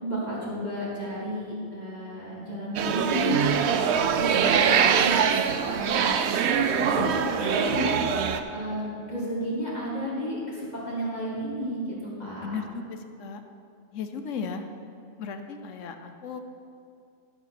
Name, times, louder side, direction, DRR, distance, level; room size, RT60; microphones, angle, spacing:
voice 1, 0.0-5.4 5.7-6.1 6.4-8.0 8.5-12.6, equal, 30° left, -8 dB, 2.2 m, -32 dB
sound 1, 2.8-8.4, right 7 dB, 65° right, 0.8 m, -23 dB
voice 2, 12.4-13.4 13.9-14.7 15.2-16.4, left 5 dB, 70° left, 7 dB, 1.1 m, -35 dB
11.5 x 5.4 x 5.9 m, 2.5 s
omnidirectional pair, 1.4 m